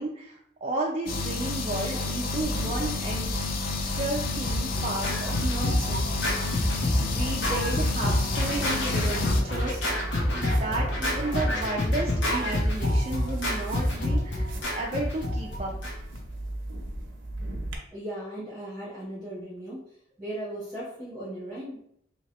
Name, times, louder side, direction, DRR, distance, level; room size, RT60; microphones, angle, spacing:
voice 1, 0.0-3.3 3.9-6.6 7.0-10.0 10.3-14.5 14.7-15.7, right 2 dB, 35° right, -2 dB, 0.4 m, -33 dB
sound 1, 1.1-9.4, left 3 dB, 50° left, 0.4 m, -30 dB
sound 2, 2.4-17.7, right 1 dB, 90° right, 0.7 m, -37 dB
Scratching (performance technique), 4.1-16.2, left 1 dB, 70° left, 1.0 m, -27 dB
voice 2, 17.9-19.8 20.2-21.8, right 1 dB, ahead, -8 dB, 1.1 m, -37 dB
2.9 x 2.9 x 2.9 m, 0.69 s
head